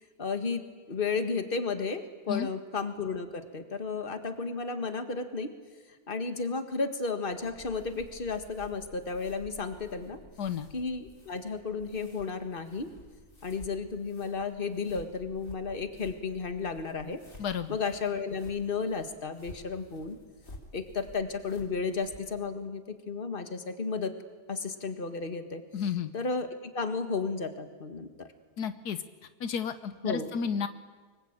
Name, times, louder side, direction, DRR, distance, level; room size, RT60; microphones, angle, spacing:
voice 1, 0.2-0.6 0.9-5.5 6.1-10.2 10.7-12.9 13.4-17.2 17.7-20.2 20.7-24.1 24.5-25.6 26.1-26.5 26.7-28.3 30.0-30.3, left 4 dB, 35° left, 8 dB, 1.9 m, -33 dB
sound 1, 7.3-22.3, left 1 dB, 55° left, 3.9 m, -53 dB
voice 2, 17.4-17.8 25.7-26.1 28.6-29.0 29.4-30.7, left 7 dB, 80° left, 11 dB, 1.6 m, -32 dB
25.0 x 22.0 x 9.0 m, 1.4 s
omnidirectional pair, 1.7 m